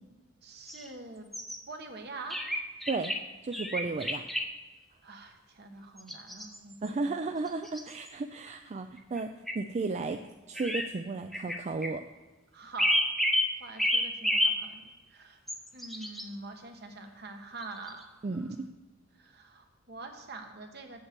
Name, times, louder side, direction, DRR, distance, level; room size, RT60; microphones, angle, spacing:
voice 1, 0.4-1.3 1.7-2.4 5.0-7.1 12.5-12.9 13.6-15.4 15.7-18.1 19.2-21.0, right 3 dB, 55° right, 5 dB, 1.2 m, -45 dB
sound 1, 0.7-0.9 1.3-1.6 2.3-3.2 3.5-4.4 6.0-6.9 7.5-8.1 9.0-9.2 9.5-9.6 10.5-10.9 11.3-11.9 12.8-13.5 13.8-14.6 15.5-16.2 17.6-18.0, left 1 dB, ahead, 0.7 m, -29 dB
voice 2, 3.4-4.3 6.8-10.2 10.5-12.1 18.2-18.6, right 3 dB, 35° right, 7 dB, 0.4 m, -34 dB
7.3 x 6.4 x 7.4 m, 1.2 s
head